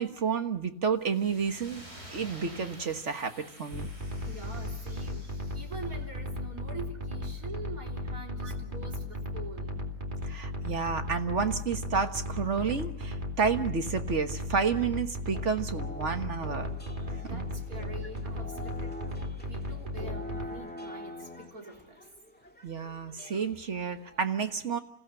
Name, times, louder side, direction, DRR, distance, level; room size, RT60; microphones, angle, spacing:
voice 1, 0.0-1.8 2.1-3.9 8.4-8.5 10.2-16.7 17.3-17.4 22.6-24.8, right 5 dB, 50° right, 7 dB, 1.7 m, -30 dB
sound 1, 1.0-5.9, right 1 dB, 85° right, 8.3 m, -50 dB
sound 2, 3.7-20.5, left 1 dB, 30° right, 2.7 m, -36 dB
voice 2, 4.2-9.8 17.2-22.0, right 2 dB, 65° right, 1 dB, 4.2 m, -45 dB
sound 3, 15.3-24.2, left 1 dB, 5° left, 2.1 m, -46 dB
28.5 x 16.5 x 9.0 m, 0.92 s
omnidirectional pair, 1.6 m